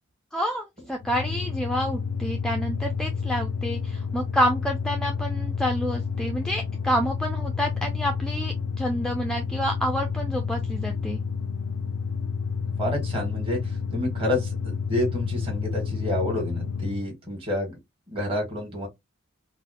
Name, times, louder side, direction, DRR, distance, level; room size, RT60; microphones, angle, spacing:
voice 1, 0.3-11.2, equal, 5° left, 0.3 m, -28 dB
sound 1, 1.0-17.1, left 5 dB, 90° left, 0.3 m, -30 dB
voice 2, 12.8-17.8 18.1-18.9, left 1 dB, 25° right, 1.4 m, -29 dB
3.9 x 2.1 x 2.8 m
head